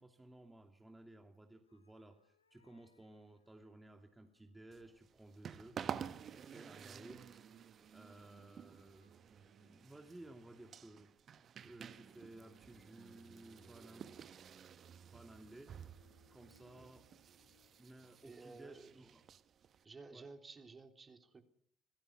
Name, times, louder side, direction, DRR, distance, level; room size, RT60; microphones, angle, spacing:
voice 1, 0.0-5.8 6.3-7.4 7.9-9.1 9.6-11.1 11.6-14.1 15.0-15.7 16.3-17.1 17.8-19.2 20.1-20.3, right 1 dB, 15° right, 4 dB, 2.8 m, -57 dB
sound 1, 1.6-4.6 5.7-10.4 11.9-18.0, left 5 dB, 85° left, 1.5 m, -76 dB
sound 2, 4.7-19.8, right 8 dB, 50° right, 1.1 m, -51 dB
voice 2, 18.2-19.0 19.8-21.4, right 4 dB, 30° right, 5 dB, 3.5 m, -54 dB
26.5 x 19.5 x 6.2 m, 0.65 s
figure-of-eight pair, 45°, 0 cm